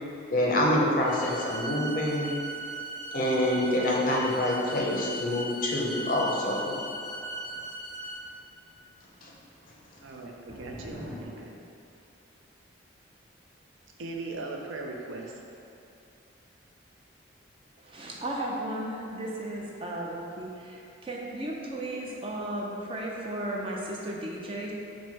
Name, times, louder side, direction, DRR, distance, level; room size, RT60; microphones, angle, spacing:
voice 1, 0.3-2.4 3.1-6.7 9.2-9.3, left 1 dB, 45° left, -3 dB, 0.5 m, -26 dB
sound 1, 1.0-8.1, right 1 dB, 20° left, 0.9 m, -38 dB
sound 2, 7.1-8.6 8.9-9.2 9.5-11.3, equal, 45° right, 1.1 m, -45 dB
voice 2, 10.0-11.5 14.0-15.3, right 3 dB, 85° right, 1 dB, 0.5 m, -39 dB
voice 3, 17.8-24.7, right 1 dB, 25° right, -2 dB, 0.4 m, -35 dB
4.3 x 2.1 x 4.5 m, 2.6 s
head